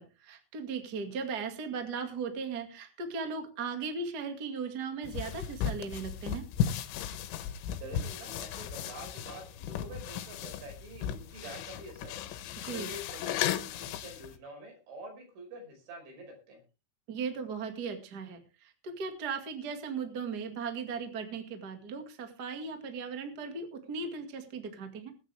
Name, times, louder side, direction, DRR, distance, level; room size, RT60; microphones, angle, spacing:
voice 1, 0.0-6.5 12.6-12.9 17.1-25.1, right 5 dB, 45° right, 6 dB, 1.3 m, -37 dB
sound 1, 5.0-14.3, left 9 dB, 85° left, 3.6 m, -35 dB
voice 2, 7.7-12.2 12.6-16.6, right 1 dB, 70° right, 3 dB, 7.4 m, -47 dB
21.5 x 9.3 x 3.5 m, 0.31 s
omnidirectional pair, 5.5 m